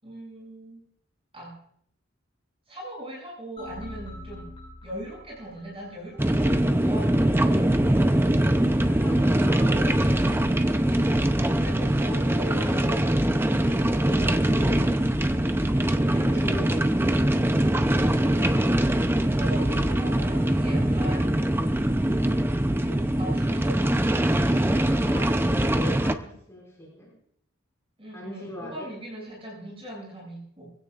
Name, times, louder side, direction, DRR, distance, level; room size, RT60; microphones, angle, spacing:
voice 1, 0.0-0.8 1.3-1.6 2.7-4.5 4.8-7.6 11.5-13.3 16.2-16.9 19.3-21.3 22.8-24.2 28.0-30.7, right 1 dB, 30° right, -4 dB, 7.1 m, -40 dB
sound 1, 3.6-6.6, left 1 dB, 30° left, 5.7 m, -44 dB
sound 2, 6.2-26.1, right 1 dB, 10° right, 0.6 m, -22 dB
voice 2, 8.8-10.4 11.7-11.8 12.4-12.8 13.9-15.3 15.6-16.8 25.0-27.1 28.1-28.9, left 1 dB, 15° left, -4 dB, 5.7 m, -40 dB
23.5 x 16.5 x 2.5 m, 0.68 s
head